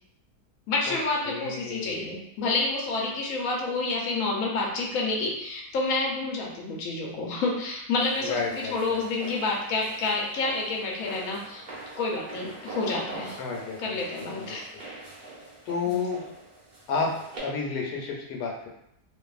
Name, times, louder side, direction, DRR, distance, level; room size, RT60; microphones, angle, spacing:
voice 1, 0.7-11.6 12.0-13.4 13.8-14.7 15.9-16.0, left 3 dB, 70° left, -2 dB, 0.9 m, -29 dB
voice 2, 1.3-2.1 8.2-9.1 13.4-14.8 15.7-16.2 16.9-17.1 17.4-18.7, left 5 dB, 85° left, 0 dB, 1.2 m, -31 dB
sound 1, 8.0-17.4, right 2 dB, 70° right, 0.4 m, -44 dB
2.6 x 2.5 x 2.3 m, 0.77 s
omnidirectional pair, 1.8 m